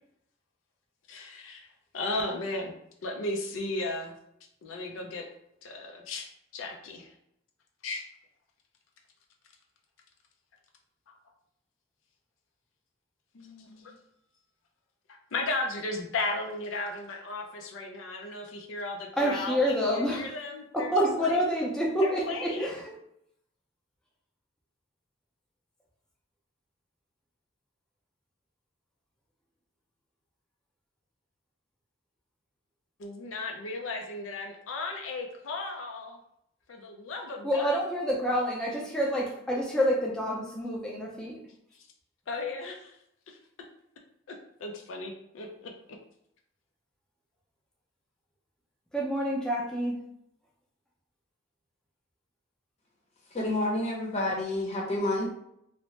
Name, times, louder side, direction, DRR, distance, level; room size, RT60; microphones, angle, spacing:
voice 1, 1.1-1.7 1.9-2.7 3.0-4.2 4.6-5.3 5.6-7.1 7.8-8.0 11.1-11.2 13.3-14.0 15.3-20.9 21.2-21.4 22.0-22.8 33.0-36.2 36.7-37.8 41.7-41.9 42.3-43.0 43.3-43.4 44.3-45.8, left 2 dB, 75° left, 2 dB, 0.4 m, -35 dB
voice 2, 19.2-20.2 20.7-22.7 37.4-41.4 48.9-49.9, equal, 5° left, -4 dB, 0.5 m, -27 dB
voice 3, 53.3-55.3, left 1 dB, 35° left, -2 dB, 0.8 m, -29 dB
2.7 x 2.1 x 3.1 m, 0.76 s
head